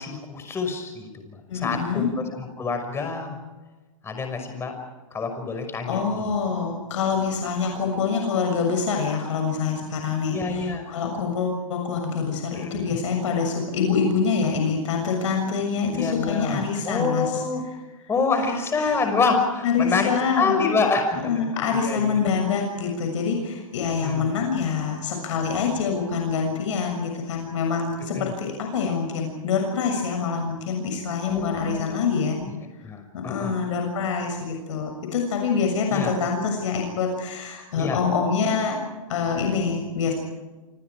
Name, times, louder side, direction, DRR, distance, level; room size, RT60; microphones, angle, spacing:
voice 1, 0.0-3.4 4.0-4.7 5.1-6.3 8.1-8.2 10.3-10.9 12.5-13.0 15.9-17.6 18.1-20.1 20.4-22.1 24.0-24.2 28.1-28.3 31.2-32.5 32.8-33.5 35.9-36.1 37.8-38.0, left 4 dB, 15° left, 5 dB, 5.8 m, -27 dB
voice 2, 1.5-2.1 5.9-17.4 18.8-19.0 19.6-20.7 21.2-32.4 33.1-38.8 39.1-40.1, left 5 dB, 65° left, 2 dB, 7.0 m, -25 dB
28.5 x 27.5 x 4.9 m, 1.2 s
hypercardioid pair, 130°, 18 cm